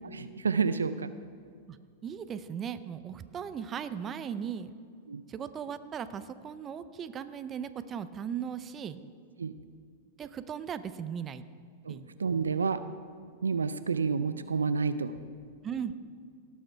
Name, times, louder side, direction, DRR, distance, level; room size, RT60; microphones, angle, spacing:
voice 1, 0.1-1.1 5.1-5.2 9.4-9.5 11.8-12.8 13.4-15.1, right 5 dB, 90° right, 12 dB, 0.4 m, -29 dB
voice 2, 2.0-4.7 5.3-9.0 10.2-11.4 11.9-12.1 15.6-16.0, right 8 dB, 30° right, 12 dB, 0.6 m, -37 dB
17.5 x 6.4 x 4.6 m, 2.1 s
hypercardioid pair, 105°, 0 cm